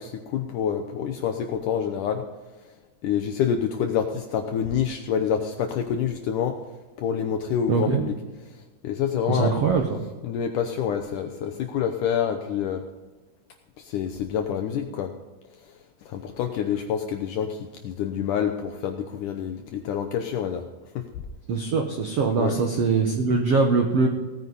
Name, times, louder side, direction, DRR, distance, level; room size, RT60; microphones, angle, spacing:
voice 1, 0.0-2.2 3.0-6.6 7.0-8.2 8.8-9.6 10.2-12.8 13.8-15.1 16.1-20.6 21.0-21.1 22.4-22.6, left 8 dB, 80° left, 5 dB, 1.9 m, -27 dB
voice 2, 7.7-8.0 9.3-10.0 21.5-24.1, right 4 dB, 90° right, 3 dB, 1.3 m, -22 dB
17.5 x 9.6 x 4.0 m, 1.2 s
omnidirectional pair, 4.6 m